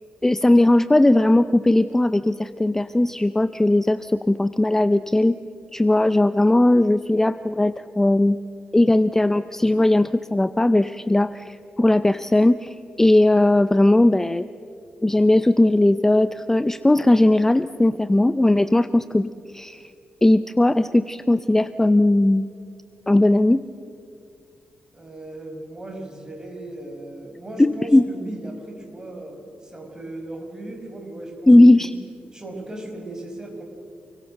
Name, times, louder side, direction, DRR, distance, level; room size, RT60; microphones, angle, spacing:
voice 1, 0.2-5.4 5.7-8.4 8.7-14.5 15.0-19.9 20.2-22.5 23.1-23.6 27.6-28.1 31.5-31.9, left 1 dB, 10° left, 12 dB, 0.5 m, -18 dB
voice 2, 24.9-32.0 32.3-33.6, right 1 dB, 20° right, 2 dB, 5.5 m, -37 dB
28.5 x 22.5 x 6.6 m, 2.4 s
cardioid pair, 100°, 3 cm